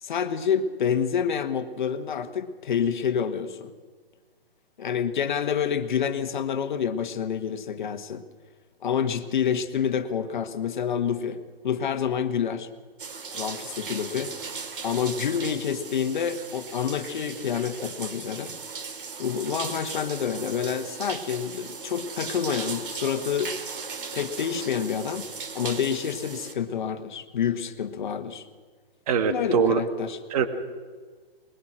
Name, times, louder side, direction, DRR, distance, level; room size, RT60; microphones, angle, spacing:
voice 1, 0.0-3.7 4.8-8.2 8.8-12.7 13.3-14.5 14.8-18.6 19.2-23.6 24.1-25.3 25.5-28.4 29.3-30.2, left 7 dB, 50° left, 10 dB, 1.6 m, -28 dB
sound 1, 13.0-26.5, right 5 dB, 60° right, 3.3 m, -37 dB
voice 2, 29.1-29.8 30.3-30.5, right 6 dB, 35° right, 9 dB, 2.0 m, -22 dB
21.5 x 21.0 x 6.2 m, 1.5 s
figure-of-eight pair, 135°, 30 cm